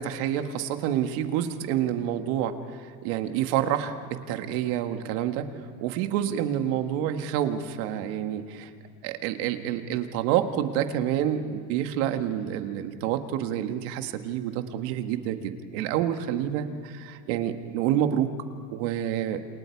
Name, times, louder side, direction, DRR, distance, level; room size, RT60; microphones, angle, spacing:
voice 1, 0.0-5.5 5.8-8.7 9.0-18.3 18.7-19.4, right 10 dB, 75° right, 7 dB, 1.9 m, -28 dB
29.0 x 28.0 x 4.7 m, 2.1 s
supercardioid pair, 135°, 39 cm